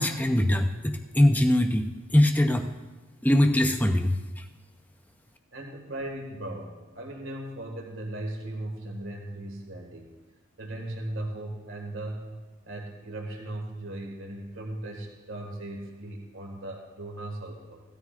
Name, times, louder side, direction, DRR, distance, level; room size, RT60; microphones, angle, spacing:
voice 1, 0.0-1.8 2.1-2.6 3.2-4.1, left 1 dB, 10° left, 6 dB, 0.6 m, -22 dB
voice 2, 5.5-10.1 10.6-12.3 12.6-17.8, right 1 dB, 65° right, 1 dB, 1.8 m, -37 dB
16.5 x 13.0 x 2.5 m, 1.2 s
head